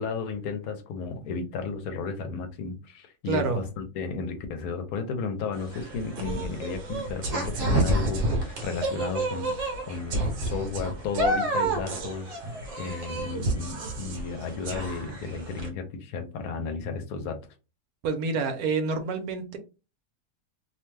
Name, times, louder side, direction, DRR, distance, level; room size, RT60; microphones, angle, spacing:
voice 1, 0.0-17.4, left 4 dB, 75° left, 6 dB, 1.0 m, -33 dB
voice 2, 3.3-3.7 12.4-12.5 18.0-19.6, right 4 dB, 80° right, 7 dB, 1.1 m, -28 dB
sound 1, 5.5-15.7, right 1 dB, 65° right, 1.1 m, -29 dB
2.7 x 2.2 x 3.2 m, 0.31 s
omnidirectional pair, 1.6 m